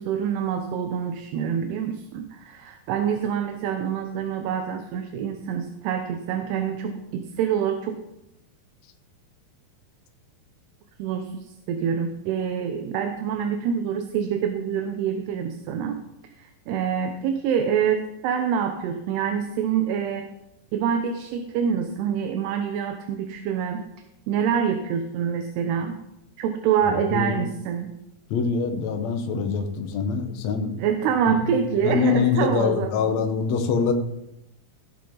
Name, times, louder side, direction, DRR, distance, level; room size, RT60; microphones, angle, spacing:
voice 1, 0.0-8.0 11.0-16.0 16.4-20.3 20.7-23.8 24.3-26.0 26.4-27.9 30.8-32.9, right 8 dB, 85° right, 6 dB, 2.9 m, -26 dB
voice 2, 26.9-27.4 28.3-30.8 31.4-31.5 31.8-33.9, left 6 dB, 70° left, 4 dB, 1.7 m, -24 dB
16.5 x 8.5 x 3.9 m, 0.86 s
omnidirectional pair, 4.7 m